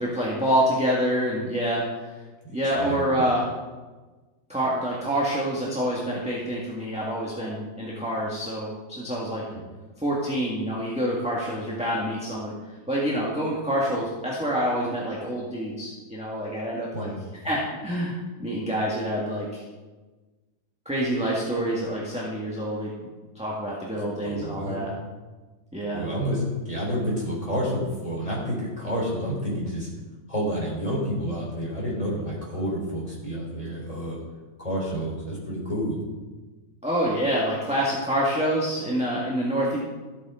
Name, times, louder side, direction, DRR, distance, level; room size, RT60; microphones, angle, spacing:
voice 1, 0.0-2.1 2.5-3.5 4.5-9.4 10.0-12.5 12.9-17.1 17.4-18.1 18.4-19.6 20.8-23.1 23.3-24.9 25.7-26.1 36.8-39.8, equal, 5° right, -5 dB, 1.6 m, -27 dB
voice 2, 2.8-3.2 9.5-9.6 16.9-17.2 24.2-24.8 25.9-29.9 30.3-34.2 34.6-36.0, equal, 20° left, -5 dB, 4.1 m, -29 dB
14.0 x 8.3 x 3.8 m, 1.2 s
omnidirectional pair, 2.0 m